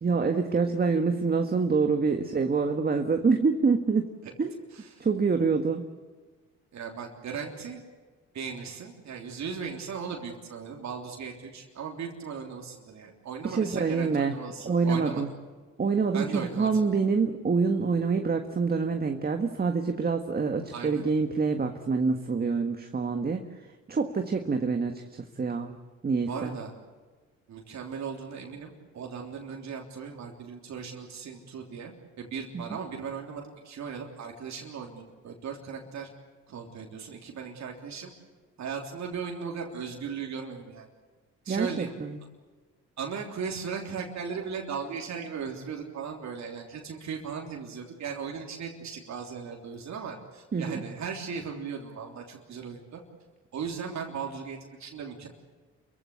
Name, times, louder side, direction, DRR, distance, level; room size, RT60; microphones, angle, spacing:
voice 1, 0.0-4.1 4.4-4.5 5.0-5.9 13.4-14.3 14.6-15.3 15.8-23.5 23.9-25.7 26.0-26.6 32.5-32.6 41.5-42.2 50.5-50.8, right 4 dB, 30° right, 5 dB, 1.6 m, -26 dB
voice 2, 6.7-7.8 8.3-15.2 16.1-16.8 20.7-21.0 26.3-26.7 27.5-31.9 32.2-36.1 36.5-38.1 38.6-40.9 41.4-41.9 43.0-53.0 53.5-55.3, right 6 dB, 65° right, 1 dB, 3.4 m, -37 dB
28.0 x 15.5 x 8.5 m, 1.4 s
cardioid pair, 90°, 30 cm